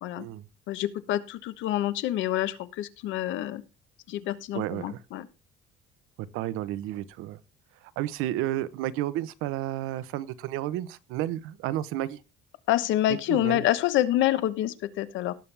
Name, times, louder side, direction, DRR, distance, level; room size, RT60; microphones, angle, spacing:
voice 1, 0.7-3.6 4.1-5.3 12.7-15.3, left 13 dB, 65° left, 13 dB, 1.1 m, -27 dB
voice 2, 4.5-5.0 6.3-7.4 8.0-12.2 13.3-13.6, right 13 dB, 90° right, 16 dB, 0.9 m, -31 dB
18.0 x 7.2 x 3.4 m, 0.28 s
cardioid pair, 170°, 21 cm